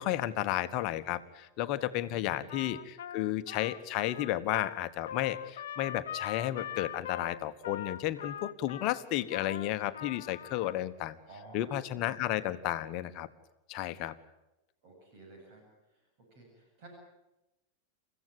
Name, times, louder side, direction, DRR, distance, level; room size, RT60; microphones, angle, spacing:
voice 1, 0.0-11.2 11.5-13.3 13.7-14.1, left 13 dB, 40° left, 11 dB, 1.3 m, -33 dB
voice 2, 1.9-2.6 11.3-11.6 11.9-12.1 14.8-15.6 16.3-16.9, right 2 dB, 45° right, 1 dB, 7.9 m, -52 dB
Trumpet, 2.5-10.8, left 9 dB, 60° left, 1.1 m, -42 dB
29.0 x 15.5 x 9.4 m, 0.98 s
figure-of-eight pair, 90°, 0 cm